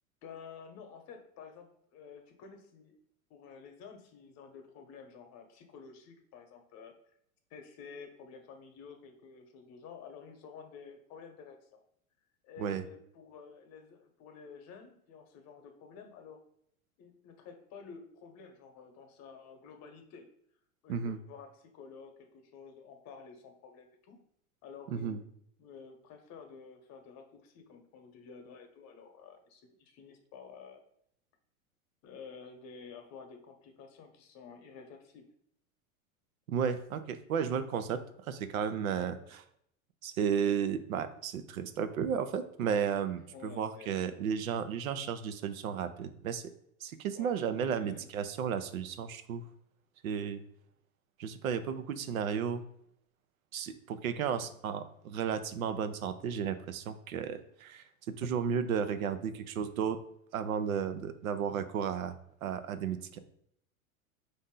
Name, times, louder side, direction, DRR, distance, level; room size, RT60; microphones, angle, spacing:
voice 1, 0.2-2.9 3.3-6.9 7.5-11.8 12.4-16.4 17.0-20.3 20.8-24.2 24.6-25.3 25.6-30.8 32.0-35.3 39.1-39.3 43.1-43.9 47.1-48.0 54.3-54.5, left 6 dB, 40° left, 5 dB, 0.9 m, -51 dB
voice 2, 36.5-38.0 38.3-39.4 40.0-46.4 46.8-49.4 50.0-50.4 51.2-52.6 53.5-60.0 60.3-62.2 62.4-63.2, right 7 dB, 75° right, 10 dB, 0.6 m, -33 dB
4.2 x 2.7 x 3.7 m, 0.72 s
hypercardioid pair, 95°, 42 cm